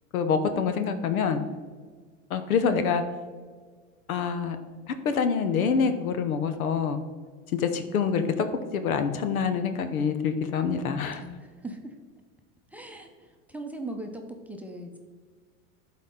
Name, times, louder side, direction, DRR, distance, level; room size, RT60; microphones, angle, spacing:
voice 1, 0.1-1.4 2.3-3.0 4.1-4.6 4.9-7.0 7.5-8.5 8.7-11.2, left 6 dB, 90° left, 9 dB, 0.9 m, -26 dB
voice 2, 11.2-11.9 12.7-15.0, right 1 dB, 5° right, 2 dB, 0.6 m, -39 dB
11.5 x 4.2 x 3.7 m, 1.6 s
hypercardioid pair, 115°, 41 cm